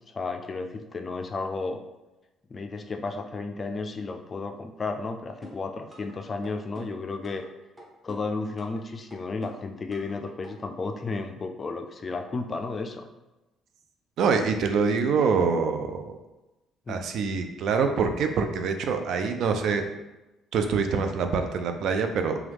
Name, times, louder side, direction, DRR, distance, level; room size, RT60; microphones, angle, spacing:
voice 1, 0.1-1.8 2.5-7.4 8.0-13.1 16.9-17.1, left 3 dB, 35° left, 6 dB, 0.3 m, -33 dB
sound 1, 5.4-6.1 6.4-7.5 7.8-8.8 9.1-10.1 10.4-10.5, left 1 dB, 10° right, 0.9 m, -47 dB
voice 2, 14.2-16.2 16.9-19.9 20.5-22.4, right 5 dB, 70° right, 6 dB, 0.3 m, -25 dB
3.0 x 2.3 x 3.3 m, 1.0 s
cardioid pair, 90°, 0 cm